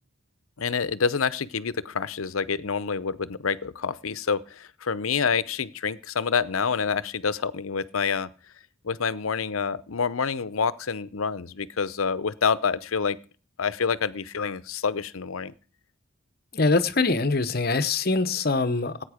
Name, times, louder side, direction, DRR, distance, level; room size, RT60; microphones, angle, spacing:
voice 1, 0.6-8.3 8.8-13.2 13.6-15.5, left 6 dB, 80° left, 16 dB, 0.7 m, -27 dB
voice 2, 16.5-19.0, left 3 dB, 45° left, 13 dB, 0.9 m, -23 dB
15.0 x 9.0 x 5.0 m, 0.39 s
head